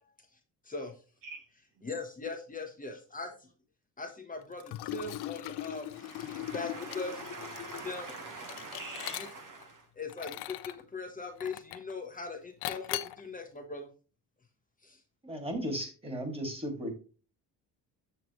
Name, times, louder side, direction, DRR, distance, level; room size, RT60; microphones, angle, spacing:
voice 1, 0.6-1.0 1.8-3.5 4.0-7.2 7.8-8.1 9.2-9.3 10.0-13.9 14.8-15.0, left 3 dB, 20° left, 3 dB, 1.1 m, -40 dB
Liquid, 4.6-9.6 10.1-10.8 11.4-11.9 12.6-13.2, left 15 dB, 80° left, 0.6 m, -40 dB
voice 2, 6.0-9.8, right 3 dB, 55° right, 7 dB, 1.2 m, -44 dB
voice 3, 15.2-16.9, equal, 15° right, 4 dB, 2.4 m, -35 dB
8.0 x 7.0 x 3.1 m, 0.36 s
cardioid pair, 125°, 39 cm